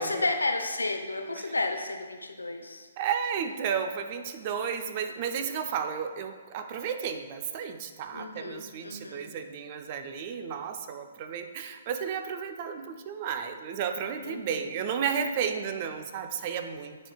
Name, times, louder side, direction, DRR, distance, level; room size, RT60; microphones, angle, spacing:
voice 1, 0.0-2.9 8.1-9.3 14.2-14.7, left 2 dB, 90° left, 6 dB, 0.6 m, -32 dB
voice 2, 3.0-17.1, right 7 dB, 40° right, 7 dB, 0.5 m, -33 dB
9.7 x 4.4 x 2.3 m, 1.5 s
figure-of-eight pair, 130°, 0 cm